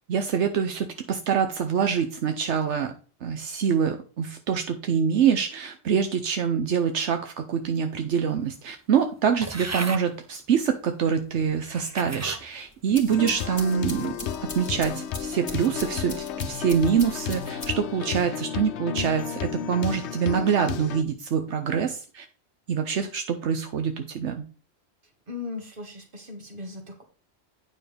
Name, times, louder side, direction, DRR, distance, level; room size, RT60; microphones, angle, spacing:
voice 1, 0.1-2.9 3.2-14.1 14.4-22.3 22.7-24.5, right 7 dB, 80° right, 6 dB, 1.1 m, -25 dB
sound 1, 9.4-10.0 10.8-10.9 11.6-12.4 13.0-13.4, right 3 dB, 20° right, 0.4 m, -35 dB
sound 2, 12.7-18.0, left 3 dB, 40° left, 1.4 m, -41 dB
sound 3, 13.1-21.0, left 8 dB, 75° left, 0.9 m, -33 dB
voice 2, 25.3-27.0, left 4 dB, 50° right, 3 dB, 1.9 m, -38 dB
9.2 x 6.2 x 3.4 m, 0.38 s
omnidirectional pair, 1.2 m